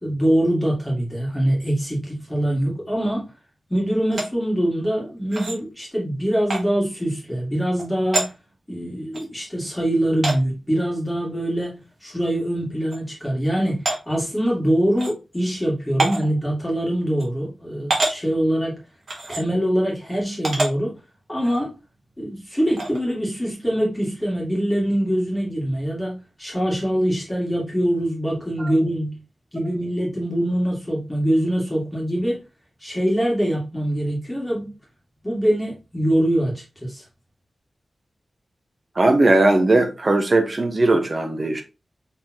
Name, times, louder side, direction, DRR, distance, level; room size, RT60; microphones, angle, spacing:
voice 1, 0.0-3.3 3.7-8.3 8.7-18.8 19.3-21.0 21.3-21.7 22.2-29.2 29.5-32.4 32.8-34.7 35.2-37.0, equal, 10° left, 2.1 m, -23 dB
sound 1, 4.1-4.3 5.3-5.6 6.5-6.6 7.8-7.9 8.1-8.3 9.1-9.2 10.2-10.4 11.6-11.7 12.1-12.2 12.9-13.0 13.8-14.0 15.0-15.1 16.0-16.3 17.2-17.3 17.9-18.2 19.1-19.4 20.4-20.7 21.4-21.6 22.8-23.0, right 2 dB, 55° right, 1.5 m, -25 dB
voice 2, 39.0-41.6, right 2 dB, 35° right, 0.9 m, -18 dB
4.2 x 3.8 x 2.9 m
wide cardioid pair, 130°, 0 cm